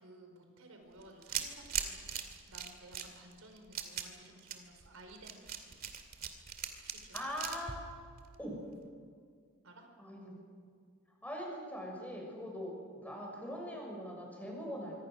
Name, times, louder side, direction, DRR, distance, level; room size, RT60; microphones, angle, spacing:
voice 1, 0.0-2.1 2.4-5.7 6.8-7.3 9.6-9.9, right 1 dB, 80° right, 3 dB, 4.8 m, -56 dB
sound 1, 1.0-8.7, right 8 dB, 40° right, 2.4 m, -41 dB
voice 2, 7.1-7.8 8.4-8.6 10.0-10.4 11.2-15.0, equal, 5° left, -1 dB, 6.4 m, -42 dB
25.5 x 25.0 x 6.5 m, 2.1 s
head